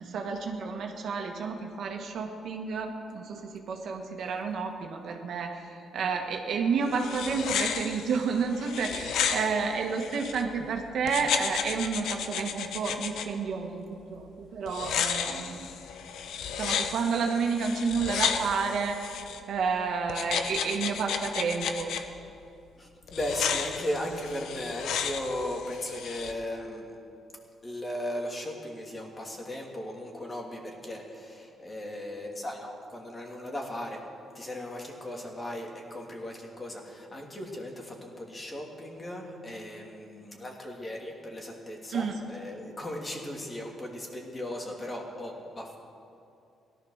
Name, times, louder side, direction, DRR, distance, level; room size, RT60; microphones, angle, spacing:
voice 1, 0.0-15.7 16.6-19.0 19.5-21.9 41.9-42.2, right 5 dB, 65° right, 2 dB, 1.8 m, -30 dB
sound 1, 6.8-10.4 11.1-13.3 14.7-19.4 20.1-22.0 23.1-26.3, left 7 dB, 75° left, 1.0 m, -33 dB
voice 2, 22.8-26.9 27.6-34.0 34.3-45.8, left 1 dB, 25° left, 0 dB, 2.9 m, -37 dB
17.0 x 12.0 x 6.6 m, 2.6 s
cardioid pair, 90°, 0 cm